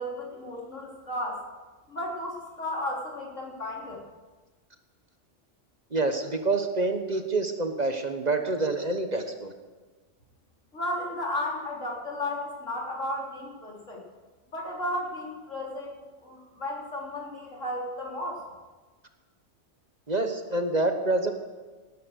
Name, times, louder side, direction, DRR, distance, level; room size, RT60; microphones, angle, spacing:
voice 1, 0.0-1.4 1.9-4.0 10.7-14.0 14.5-18.4, left 1 dB, 85° left, -2 dB, 4.1 m, -34 dB
voice 2, 5.9-9.5 20.1-21.3, right 2 dB, 35° right, 6 dB, 1.3 m, -27 dB
18.5 x 10.0 x 6.5 m, 1.3 s
omnidirectional pair, 1.3 m